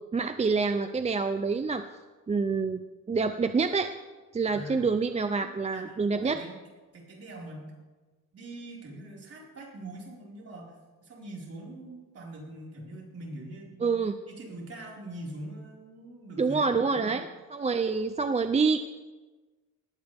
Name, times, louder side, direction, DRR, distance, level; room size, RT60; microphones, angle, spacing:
voice 1, 0.1-1.8 2.3-2.8 3.1-3.9 4.3-6.4 13.8-14.1 16.4-18.8, right 4 dB, 20° right, 8 dB, 0.5 m, -27 dB
voice 2, 4.4-4.9 5.4-6.5 6.9-7.7 8.3-10.7 11.0-13.9 14.3-17.2, right 1 dB, 45° right, -3 dB, 5.0 m, -43 dB
19.5 x 16.5 x 3.5 m, 1.3 s
wide cardioid pair, 160°, 34 cm